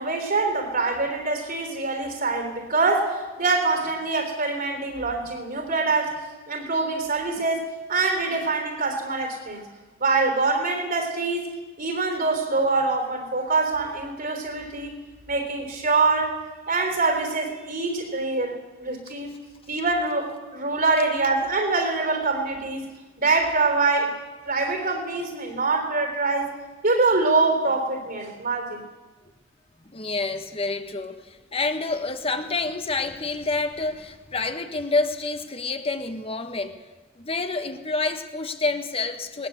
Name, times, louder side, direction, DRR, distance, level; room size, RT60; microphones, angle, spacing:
voice 1, 0.0-6.2 6.5-9.7 10.0-11.5 11.8-15.0 15.3-16.4 16.7-19.3 19.7-22.9 23.2-24.2 24.5-26.5 26.8-28.8, right 3 dB, 50° right, 4 dB, 3.6 m, -24 dB
voice 2, 29.9-36.8 37.2-39.5, left 3 dB, 30° left, 7 dB, 1.6 m, -28 dB
20.0 x 19.5 x 8.1 m, 1.3 s
head